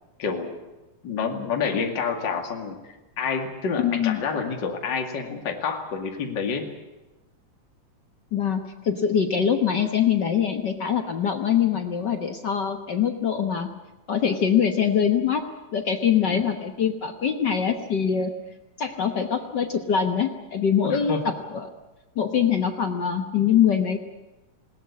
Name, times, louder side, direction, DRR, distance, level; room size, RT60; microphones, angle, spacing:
voice 1, 0.2-0.6 1.0-2.8 3.2-6.6 16.2-16.4 20.8-21.2, left 5 dB, 35° left, 3 dB, 2.7 m, -28 dB
voice 2, 3.8-4.2 8.3-13.7 14.1-15.4 15.7-18.3 18.8-21.7 22.1-24.0, left 8 dB, 60° left, 6 dB, 1.1 m, -23 dB
20.0 x 18.5 x 9.6 m, 1.0 s
omnidirectional pair, 3.6 m